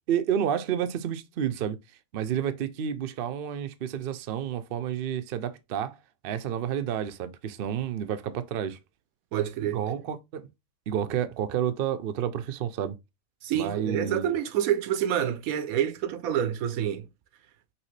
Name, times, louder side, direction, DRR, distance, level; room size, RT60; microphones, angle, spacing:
voice 1, 0.1-1.8 2.1-6.0 6.2-8.8 9.6-10.5 10.9-13.0 13.5-14.3, right 9 dB, 60° right, 0.6 m, -30 dB
voice 2, 9.3-9.8 13.4-17.1, right 10 dB, 85° right, 1.1 m, -27 dB
5.9 x 2.8 x 3.2 m
omnidirectional pair, 1.4 m